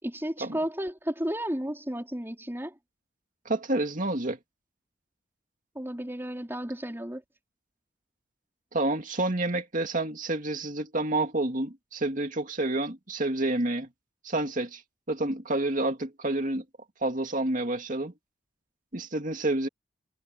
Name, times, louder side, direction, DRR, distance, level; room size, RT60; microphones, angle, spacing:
voice 1, 0.0-2.8 5.8-7.2, equal, 10° right, 4.1 m, -33 dB
voice 2, 3.5-4.4 8.7-13.9 14.2-14.8 15.1-16.6 17.0-18.1 18.9-19.7, right 2 dB, 45° right, 2.4 m, -29 dB
head